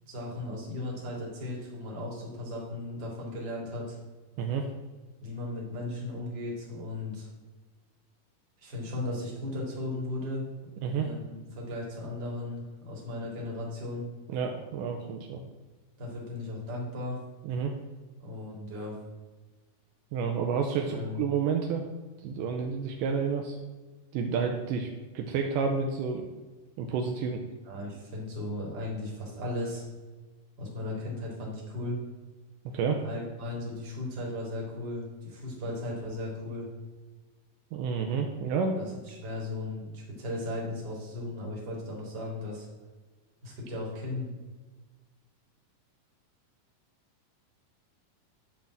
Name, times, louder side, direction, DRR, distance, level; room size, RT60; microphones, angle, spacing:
voice 1, 0.1-4.0 5.2-7.3 8.6-10.5 10.9-14.1 16.0-17.2 18.2-19.0 20.9-21.2 27.7-29.9 30.6-32.0 33.0-36.7 38.8-42.7 43.4-44.3, left 2 dB, 35° right, -3 dB, 2.3 m, -36 dB
voice 2, 14.3-15.4 17.4-17.7 20.1-21.9 22.2-23.6 24.1-24.9 25.1-26.3 26.8-27.4 32.7-33.0 37.7-38.8, right 6 dB, 80° right, 3 dB, 2.1 m, -30 dB
10.5 x 3.5 x 7.2 m, 1.3 s
omnidirectional pair, 4.0 m